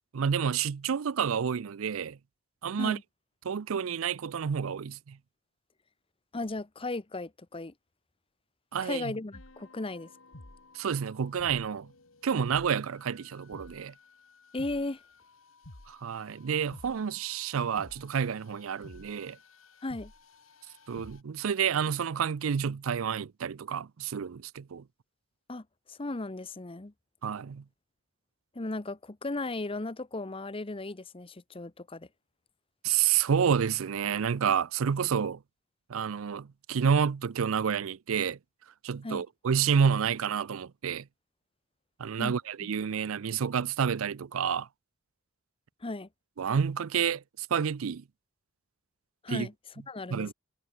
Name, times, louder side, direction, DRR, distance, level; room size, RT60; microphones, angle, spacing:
voice 1, 0.1-2.2 2.6-3.0 3.4-5.2 8.7-9.1 10.7-11.9 12.2-13.9 15.9-19.4 20.9-24.8 27.2-27.6 32.8-35.4 35.9-38.4 38.8-41.1 42.0-44.7 46.4-48.0 49.3-49.5 50.1-50.3, right 7 dB, 85° right, 0.5 m, -29 dB
voice 2, 6.3-7.7 8.8-10.1 14.5-15.0 19.8-20.1 25.5-26.9 28.5-32.1 39.0-39.2 42.2-42.3 42.6-42.7 45.8-46.1 49.2-49.5 49.9-50.3, left 2 dB, 25° left, 0.8 m, -36 dB
sound 1, 9.3-21.2, left 2 dB, 80° left, 2.6 m, -53 dB
head